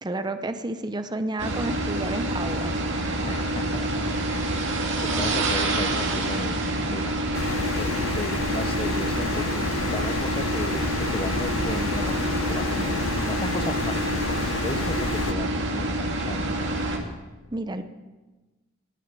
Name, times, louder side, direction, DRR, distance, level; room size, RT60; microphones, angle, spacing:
voice 1, 0.0-2.7 17.5-17.8, right 2 dB, 20° right, 9 dB, 0.7 m, -30 dB
sound 1, 1.4-17.0, right 1 dB, 60° right, 2.2 m, -27 dB
voice 2, 3.3-16.8, left 2 dB, 25° left, 11 dB, 0.8 m, -35 dB
sound 2, 7.3-15.3, left 5 dB, 70° left, 0.6 m, -31 dB
19.5 x 6.5 x 8.9 m, 1.2 s
head